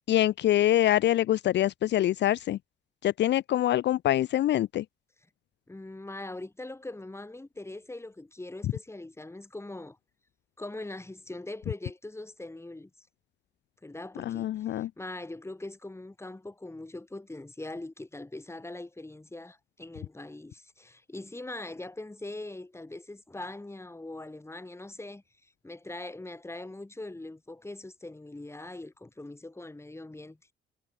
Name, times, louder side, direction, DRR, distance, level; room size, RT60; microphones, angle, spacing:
voice 1, 0.1-2.6 3.0-4.8 14.2-14.9, left 13 dB, 60° left, 0.5 m, -25 dB
voice 2, 5.7-10.0 10.6-13.1 13.8-25.2 25.6-30.4, left 2 dB, 15° left, 5.3 m, -42 dB
cardioid pair, 90°, 20 cm